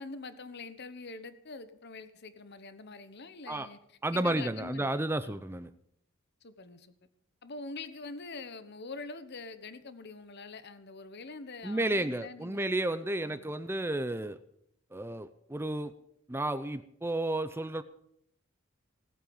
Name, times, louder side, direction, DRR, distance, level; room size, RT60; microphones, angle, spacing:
voice 1, 0.0-4.9 5.2-5.5 6.4-6.9 7.4-12.6 13.2-13.6, left 3 dB, 55° left, 12 dB, 1.1 m, -44 dB
voice 2, 4.0-5.7 11.6-14.4 14.9-15.9 16.3-17.8, right 1 dB, 10° right, 12 dB, 0.6 m, -32 dB
18.0 x 8.9 x 7.1 m, 0.70 s
head